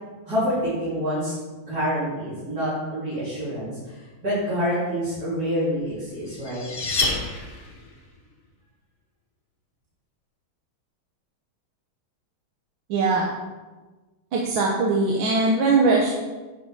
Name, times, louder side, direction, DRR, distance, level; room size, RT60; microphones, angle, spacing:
voice 1, 0.2-6.7, equal, 45° right, -12 dB, 3.4 m, -27 dB
sound 1, 5.9-8.0, left 3 dB, 35° left, 0.9 m, -28 dB
voice 2, 12.9-13.3 14.3-16.1, right 3 dB, 75° right, -2 dB, 1.7 m, -20 dB
9.6 x 5.4 x 4.7 m, 1.2 s
omnidirectional pair, 2.2 m